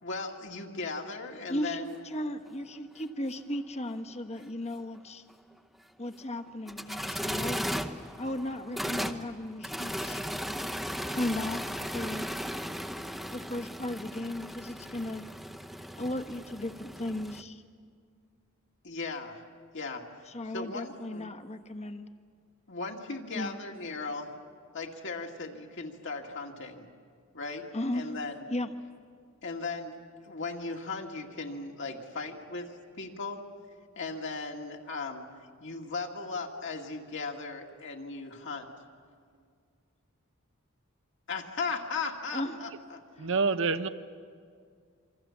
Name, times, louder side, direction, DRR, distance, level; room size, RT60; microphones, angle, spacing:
voice 1, 0.0-1.9 18.8-19.4 19.7-20.0 20.5-21.3 22.7-24.3 24.7-26.9 27.3-27.7 27.9-28.4 29.4-30.0 30.2-32.7 33.0-33.4 34.0-35.2 35.6-38.7 41.3-43.0, left 4 dB, 60° left, 2.3 m, -37 dB
voice 2, 1.5-5.2 6.0-7.7 8.2-10.2 11.1-12.3 13.3-15.2 15.9-17.6 20.3-22.1 23.3-23.5 27.7-28.1 28.5-28.7 42.3-42.5 43.2-43.4, left 1 dB, 30° left, 1.2 m, -36 dB
sound 1, 2.1-2.2 2.5-2.6 4.9-5.0 6.4-17.4, equal, ahead, 0.9 m, -36 dB
voice 3, 43.2-43.9, right 4 dB, 65° right, 0.9 m, -27 dB
27.5 x 24.5 x 7.4 m
head